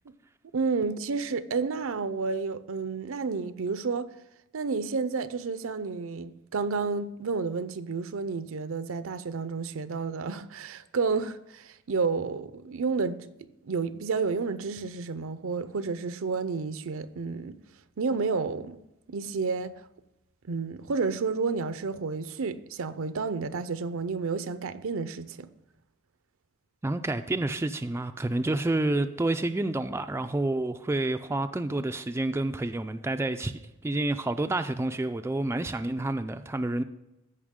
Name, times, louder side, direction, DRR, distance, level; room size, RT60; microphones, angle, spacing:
voice 1, 0.5-4.1 4.5-13.2 13.6-17.6 18.0-18.8 19.1-19.8 20.5-25.5, right 4 dB, 70° right, 0.6 m, -30 dB
voice 2, 26.8-33.5 33.8-36.8, right 2 dB, 10° right, 0.3 m, -29 dB
15.0 x 5.5 x 3.7 m
head